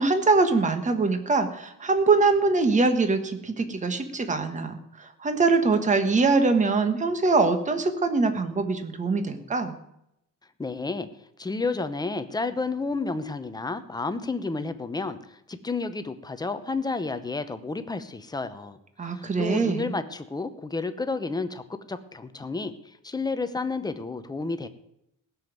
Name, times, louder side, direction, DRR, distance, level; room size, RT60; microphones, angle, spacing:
voice 1, 0.0-9.7 19.0-19.9, right 3 dB, 20° right, 8 dB, 1.4 m, -23 dB
voice 2, 10.6-11.1 11.4-18.8 19.0-24.7, left 3 dB, 10° left, 10 dB, 0.8 m, -31 dB
16.5 x 7.2 x 9.3 m, 0.80 s
cardioid pair, 175°, 33 cm